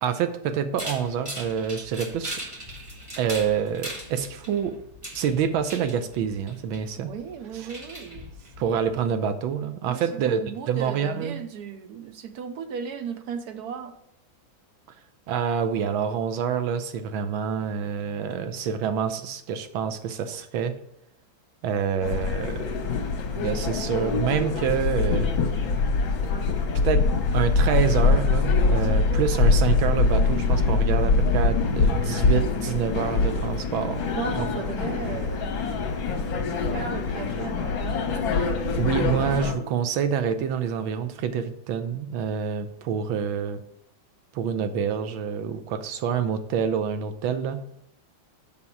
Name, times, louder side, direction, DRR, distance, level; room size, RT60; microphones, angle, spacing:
voice 1, 0.0-2.4 3.2-4.8 5.1-7.1 7.5-7.7 8.6-10.4 10.7-11.5 15.3-20.7 21.6-22.8 23.3-25.3 26.7-27.1 27.3-34.0 34.4-34.5 38.8-43.6 44.3-47.6, right 7 dB, 90° right, 9 dB, 1.6 m, -27 dB
sound 1, 0.8-9.0, equal, 15° right, 1.6 m, -40 dB
voice 2, 7.0-9.1 9.9-14.0 34.2-35.6 36.7-38.3, right 7 dB, 70° right, 9 dB, 1.0 m, -36 dB
sound 2, 22.0-39.5, left 4 dB, 80° left, 1.8 m, -24 dB
7.4 x 6.1 x 4.5 m, 0.77 s
omnidirectional pair, 2.1 m